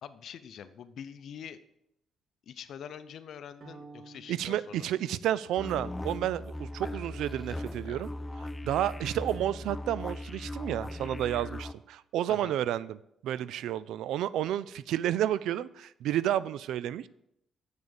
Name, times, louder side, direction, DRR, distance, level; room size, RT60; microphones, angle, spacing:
voice 1, 0.0-1.6 2.5-5.0 7.8-8.0 12.3-12.6, left 8 dB, 65° left, 13 dB, 0.7 m, -45 dB
sound 1, 3.6-5.9, right 3 dB, 50° right, 1.6 m, -53 dB
voice 2, 4.3-8.1 8.6-13.0 13.2-17.1, right 12 dB, 85° right, 18 dB, 0.4 m, -31 dB
sound 2, 5.6-11.7, left 1 dB, 10° left, 0.5 m, -39 dB
7.3 x 6.3 x 7.0 m, 0.79 s
cardioid pair, 90°, 0 cm